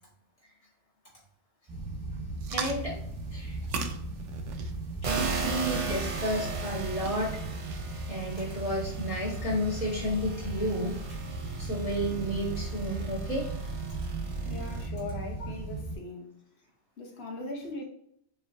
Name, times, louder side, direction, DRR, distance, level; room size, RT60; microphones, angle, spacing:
sound 1, 1.7-16.0, right 2 dB, 20° right, 1.2 m, -37 dB
sound 2, 2.4-8.7, right 5 dB, 85° right, 0.9 m, -41 dB
voice 1, 2.5-2.9 3.3-3.7 5.4-7.4 7.7-7.8 8.1-11.0 11.6-13.5, equal, 30° left, 1.9 m, -31 dB
sound 3, 5.0-14.9, right 5 dB, 40° right, 0.5 m, -37 dB
voice 2, 14.4-16.3 17.0-17.8, left 2 dB, 60° left, 1.2 m, -39 dB
5.3 x 3.0 x 2.7 m
omnidirectional pair, 1.2 m